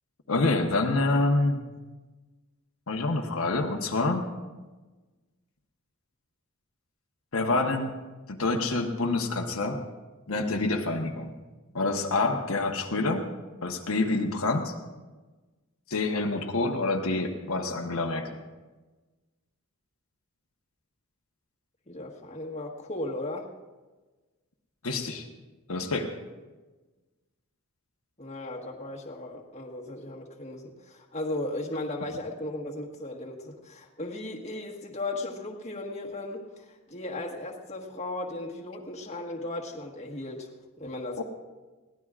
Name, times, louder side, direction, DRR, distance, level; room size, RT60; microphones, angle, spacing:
voice 1, 0.3-1.6 2.9-4.3 7.3-7.9 8.3-9.8 10.3-11.3 11.7-13.3 13.6-14.7 15.9-18.3 24.8-25.3 25.7-26.2 41.2-41.3, left 2 dB, 70° left, 2 dB, 1.1 m, -27 dB
voice 2, 21.9-23.5 28.2-40.5 40.8-41.2, left 2 dB, 30° left, -1 dB, 1.5 m, -36 dB
22.0 x 16.5 x 2.5 m, 1.2 s
head